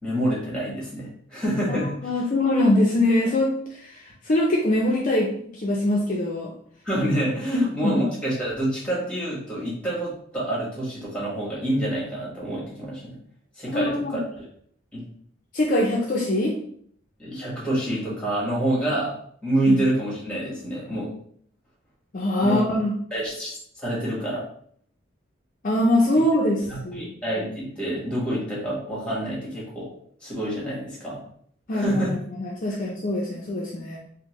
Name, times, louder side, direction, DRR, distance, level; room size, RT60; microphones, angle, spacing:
voice 1, 0.0-1.9 6.8-13.2 13.6-14.4 14.9-15.1 17.2-21.1 22.4-22.6 23.1-24.5 26.7-29.9 30.2-31.2 31.7-32.1, right 1 dB, 5° left, -6 dB, 1.4 m, -27 dB
voice 2, 2.0-6.5 7.5-8.0 13.7-14.2 15.5-16.6 19.7-19.8 22.1-22.9 25.6-27.1 31.7-32.0 32.4-34.0, left 1 dB, 40° left, -3 dB, 0.4 m, -23 dB
4.3 x 2.1 x 3.0 m, 0.62 s
head